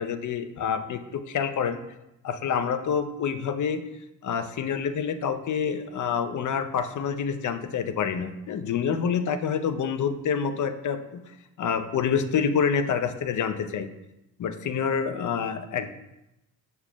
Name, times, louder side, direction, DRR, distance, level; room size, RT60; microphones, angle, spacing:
voice 1, 0.0-1.8 2.2-3.8 4.2-11.2 11.6-13.9 14.4-15.9, left 7 dB, 40° left, 9 dB, 0.7 m, -27 dB
6.9 x 6.7 x 2.2 m, 0.90 s
hypercardioid pair, 50°, 49 cm